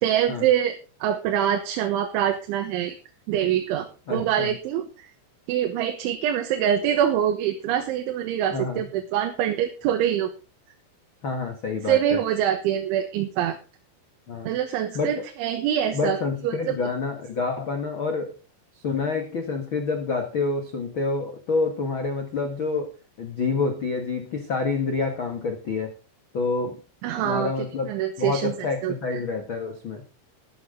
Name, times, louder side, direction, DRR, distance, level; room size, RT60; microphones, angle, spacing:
voice 1, 0.0-3.0 3.3-5.1 5.5-10.3 11.8-13.6 14.4-16.2 16.4-16.8 27.0-27.5 27.9-28.6 28.8-28.9, right 10 dB, 80° right, 5 dB, 3.7 m, -24 dB
voice 2, 4.1-4.5 8.5-8.9 11.2-12.2 14.3-14.5 14.9-15.2 15.9-18.3 18.7-22.9 23.2-25.9 26.3-26.8 27.2-27.9 28.2-30.1, left 4 dB, 75° left, 5 dB, 1.1 m, -28 dB
13.5 x 12.5 x 3.9 m, 0.33 s
omnidirectional pair, 5.4 m